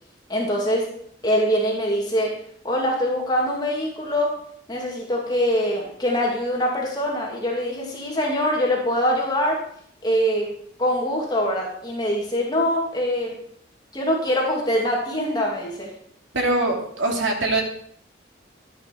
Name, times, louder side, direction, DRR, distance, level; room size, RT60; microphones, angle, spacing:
voice 1, 0.3-0.8 1.2-2.3 2.6-4.3 4.7-9.6 10.0-10.5 10.8-13.4 13.9-15.9, equal, 20° left, -2 dB, 2.5 m, -23 dB
voice 2, 16.3-17.6, right 2 dB, 90° right, 1 dB, 3.2 m, -22 dB
13.5 x 9.1 x 5.3 m, 0.65 s
head